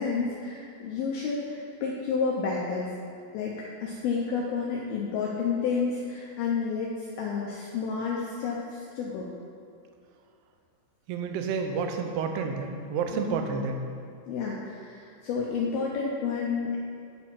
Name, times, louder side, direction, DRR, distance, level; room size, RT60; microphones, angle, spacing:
voice 1, 0.0-1.6 1.8-2.9 3.3-9.3 13.1-13.7 14.3-16.8, left 5 dB, 90° left, -3 dB, 2.1 m, -30 dB
voice 2, 11.1-13.8, right 5 dB, 85° right, 4 dB, 2.4 m, -30 dB
11.0 x 4.4 x 5.6 m, 2.3 s
omnidirectional pair, 5.3 m